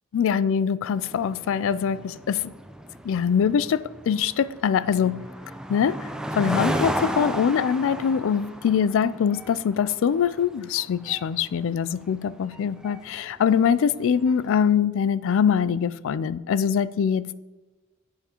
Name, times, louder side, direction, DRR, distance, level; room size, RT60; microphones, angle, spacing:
voice 1, 0.1-2.5 3.0-5.2 5.7-6.0 6.4-17.4, left 7 dB, 65° left, 0.3 m, -23 dB
sound 1, 0.9-14.5, right 1 dB, 5° right, 0.4 m, -34 dB
10.0 x 8.5 x 2.9 m
head